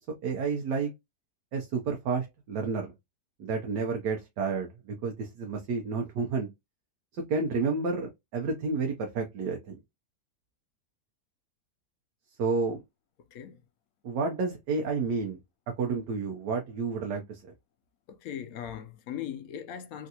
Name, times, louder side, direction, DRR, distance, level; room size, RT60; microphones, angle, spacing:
voice 1, 0.2-0.9 1.5-2.9 3.4-6.5 7.3-9.8 12.4-12.8 14.0-15.4 15.8-17.5, right 4 dB, 85° right, 1.3 m, -30 dB
voice 2, 18.1-20.1, left 9 dB, 70° left, 0.9 m, -39 dB
3.6 x 2.5 x 2.7 m
omnidirectional pair, 1.8 m